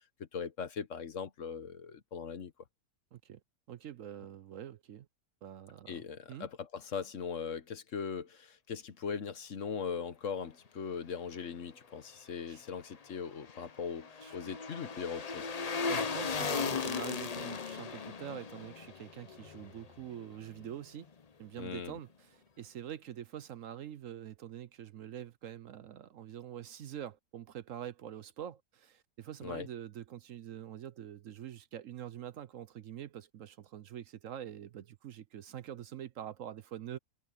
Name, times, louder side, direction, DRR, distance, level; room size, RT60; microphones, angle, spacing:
voice 1, 0.2-2.5 5.9-15.5 21.6-22.0 29.4-29.7, left 6 dB, 55° left, 1.4 m, -40 dB
voice 2, 3.1-3.4 3.7-5.1 5.4-6.0 6.3-6.5 12.5-12.6 14.2-14.3 15.9-21.1 21.4-37.0, right 10 dB, 65° right, 1.0 m, -45 dB
sound 1, 13.0-20.3 20.6-20.7, left 5 dB, 40° left, 0.6 m, -37 dB
omnidirectional pair, 1.6 m